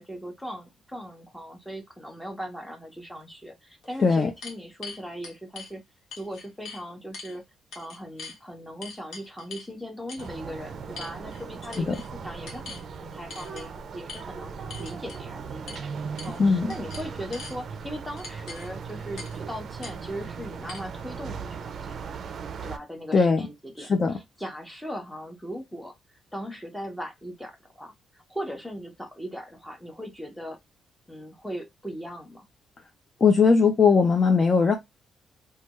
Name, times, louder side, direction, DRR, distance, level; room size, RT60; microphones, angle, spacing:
voice 1, 0.0-5.8 6.2-7.4 7.7-14.5 14.8-15.9 16.2-21.9 22.6-30.6 31.1-32.5, equal, 5° left, 0.8 m, -39 dB
sound 1, 3.2-3.3 3.8-5.7 6.1-6.8 7.1-7.4 7.7-8.4 8.8-9.7 10.1-10.3 11.0-11.4 11.7-12.1 12.5-12.8 13.3-13.7 14.1-14.2 14.7-15.2 15.7-15.8 16.2-16.4 16.7-17.6 18.2-18.7 19.2-19.4 19.8-19.9 20.7-20.8, left 4 dB, 60° left, 1.2 m, -42 dB
sound 2, 10.2-22.8, right 6 dB, 45° right, 0.5 m, -38 dB
voice 2, 16.4-16.7 23.1-23.5 23.8-24.2 33.2-34.7, left 5 dB, 30° left, 0.4 m, -19 dB
3.3 x 2.3 x 2.9 m
cardioid pair, 150°, 0 cm